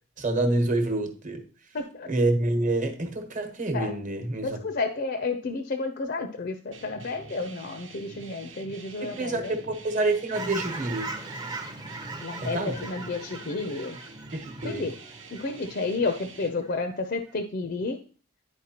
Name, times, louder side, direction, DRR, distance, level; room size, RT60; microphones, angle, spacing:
voice 1, 0.2-1.4 2.0-4.6 9.0-11.1 12.4-12.7 14.3-14.9, right 2 dB, 40° right, 1.1 m, -27 dB
voice 2, 1.7-2.1 3.7-3.9 4.4-9.6 12.2-14.0 14.6-14.9 15.3-18.0, left 3 dB, 50° left, 0.5 m, -31 dB
sound 1, 6.7-16.5, right 3 dB, 75° right, 1.0 m, -46 dB
Fowl / Chirp tweet, 10.3-16.2 16.6-16.8, right 3 dB, 20° right, 0.7 m, -39 dB
10.5 x 4.5 x 2.9 m
head